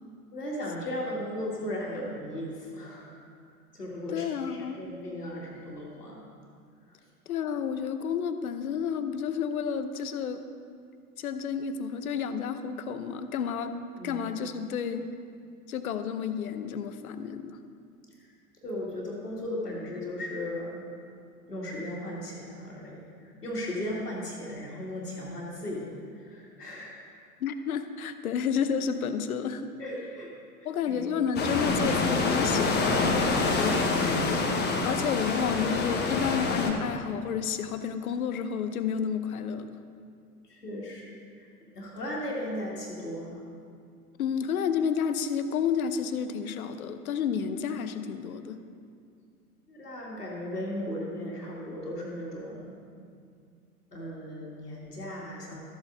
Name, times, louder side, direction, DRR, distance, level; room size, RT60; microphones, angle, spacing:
voice 1, 0.3-3.1 3.7-6.2 14.0-14.2 18.2-18.3 18.6-20.8 21.5-27.0 29.8-30.3 30.9-31.1 40.4-41.1 41.7-43.4 47.3-47.4 49.7-52.8 53.9-55.6, left 1 dB, 85° left, -3 dB, 2.1 m, -36 dB
voice 2, 4.1-4.8 7.3-10.4 11.2-13.7 14.0-15.1 15.7-17.6 27.4-29.7 30.6-34.3 34.8-39.7 44.2-48.6, left 7 dB, 65° left, 9 dB, 0.8 m, -31 dB
sound 1, 31.4-36.7, left 3 dB, 20° left, 1.1 m, -26 dB
13.5 x 8.0 x 3.8 m, 2.3 s
figure-of-eight pair, 100°, 46 cm